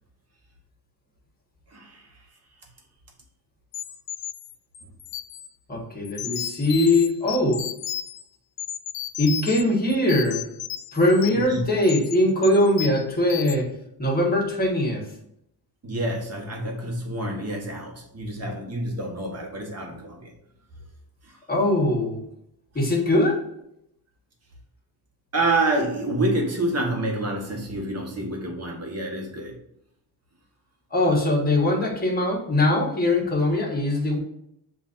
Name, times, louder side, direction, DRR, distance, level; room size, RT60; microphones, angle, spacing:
voice 1, 1.7-2.1 11.3-11.6 15.8-20.3 21.2-21.4 25.3-29.6, right 2 dB, 40° right, 1 dB, 1.1 m, -28 dB
sound 1, 3.7-5.5 6.0-8.2 8.6-9.6 9.9-11.5 11.8-12.2 12.4-13.0 13.3-13.6, left 11 dB, 90° left, 0.5 m, -34 dB
voice 2, 5.7-7.7 9.2-10.5 10.9-13.7 14.0-15.1 21.5-22.2 22.7-23.4 30.9-34.2, left 1 dB, 20° left, -2 dB, 1.4 m, -21 dB
7.3 x 2.6 x 2.5 m, 0.77 s
cardioid pair, 120°, 41 cm